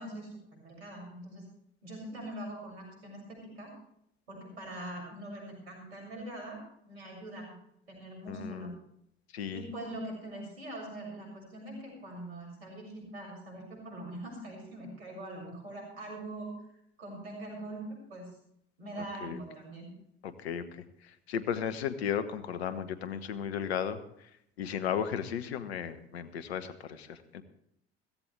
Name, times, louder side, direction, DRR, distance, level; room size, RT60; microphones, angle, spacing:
voice 1, 0.0-1.4 1.8-3.7 4.3-7.5 7.9-8.7 9.5-16.5 17.0-18.3 18.8-19.9, right 1 dB, 80° right, 0 dB, 6.8 m, -43 dB
voice 2, 8.3-8.7 9.3-9.6 19.2-19.4 20.4-20.6 21.3-24.0 24.6-27.4, left 8 dB, 80° left, 12 dB, 1.2 m, -34 dB
16.0 x 15.5 x 3.4 m, 0.74 s
hypercardioid pair, 65°, 31 cm